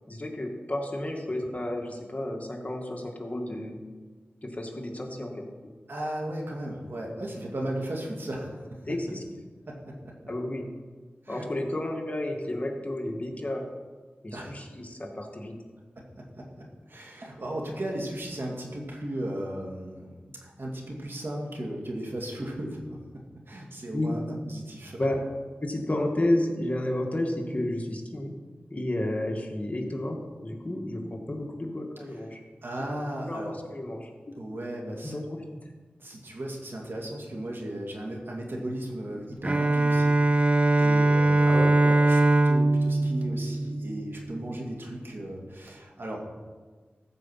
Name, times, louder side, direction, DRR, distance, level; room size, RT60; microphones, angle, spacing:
voice 1, 0.1-3.8 4.4-5.5 8.9-9.2 10.3-10.7 11.3-13.7 14.2-15.6 23.9-24.1 25.0-25.2 25.6-28.3 28.7-32.4 33.3-34.1 35.0-35.4 41.5-41.7, left 1 dB, 35° left, 1 dB, 2.0 m, -31 dB
voice 2, 5.9-9.0 9.7-10.2 11.2-11.5 14.3-14.6 16.0-20.1 20.4-24.2 24.5-25.0 32.6-33.6 34.3-35.2 36.0-40.5 40.8-46.4, right 1 dB, 65° right, -1 dB, 2.6 m, -36 dB
Bowed string instrument, 39.4-44.3, right 2 dB, 30° right, 0.5 m, -21 dB
14.5 x 5.3 x 7.5 m, 1.4 s
cardioid pair, 45°, 4 cm